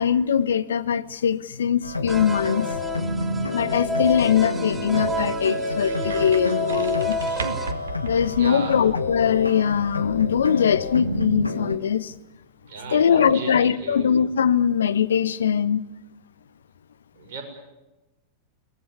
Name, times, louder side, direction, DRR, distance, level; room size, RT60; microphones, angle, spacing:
voice 1, 0.0-2.7 3.5-7.2 8.0-12.1 12.9-15.8, left 8 dB, 65° left, 0.9 m, -21 dB
sound 1, 1.8-11.8, left 2 dB, 85° left, 1.5 m, -29 dB
sound 2, 2.1-7.7, left 1 dB, 15° right, 1.6 m, -30 dB
sound 3, 2.8-9.0, right 4 dB, 70° right, 1.7 m, -39 dB
voice 2, 8.3-8.8 12.6-14.2 17.1-17.4, right 4 dB, 50° right, 6.3 m, -35 dB
23.0 x 18.5 x 9.8 m
figure-of-eight pair, 90°, 0 cm